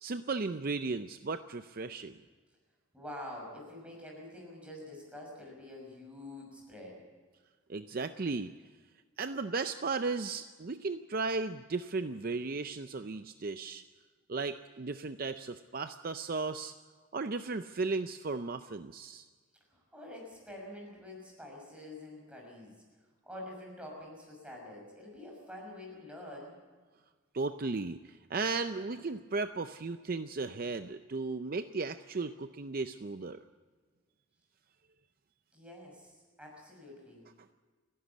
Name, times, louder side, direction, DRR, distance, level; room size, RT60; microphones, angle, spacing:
voice 1, 0.0-2.2 7.7-8.5 9.2-13.8 14.3-16.7 17.1-19.3 27.3-33.4, right 3 dB, 45° right, 9 dB, 0.5 m, -35 dB
voice 2, 2.9-7.1 19.7-22.8 23.2-26.6 35.5-37.2, left 1 dB, 5° right, -1 dB, 6.1 m, -47 dB
29.5 x 11.5 x 8.4 m, 1.4 s
head